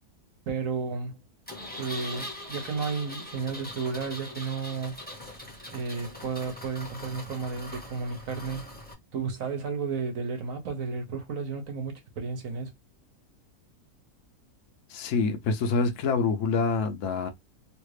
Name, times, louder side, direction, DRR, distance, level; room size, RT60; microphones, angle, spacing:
voice 1, 0.5-1.2 1.8-5.0 5.7-8.6 9.1-12.7, right 5 dB, 65° right, 1.2 m, -33 dB
Engine, 1.5-8.9, left 1 dB, 10° left, 0.8 m, -41 dB
voice 2, 14.9-17.3, left 4 dB, 65° left, 1.0 m, -26 dB
3.2 x 2.4 x 3.2 m
omnidirectional pair, 1.6 m